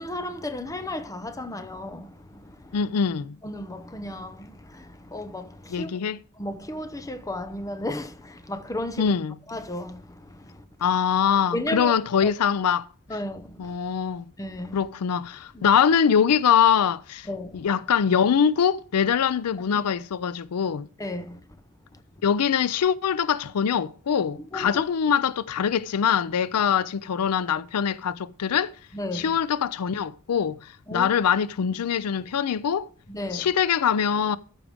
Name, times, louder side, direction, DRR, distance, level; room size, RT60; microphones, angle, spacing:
voice 1, 0.0-2.8 3.4-5.9 6.4-9.1 9.5-10.6 11.5-11.9 12.2-12.3 13.1-13.8 14.4-14.8 15.5-15.7 17.3-17.6 19.7-19.8 21.0-21.4 24.5-24.8 28.9-29.3 30.9-31.1 33.1-33.5, left 1 dB, 15° left, 0.8 m, -34 dB
voice 2, 2.7-3.4 5.7-6.2 9.0-9.4 10.8-12.9 13.6-14.2 14.7-17.3 17.5-20.9 22.2-28.7 29.1-32.9 33.3-34.4, left 7 dB, 85° left, 0.4 m, -23 dB
14.0 x 4.8 x 5.0 m
head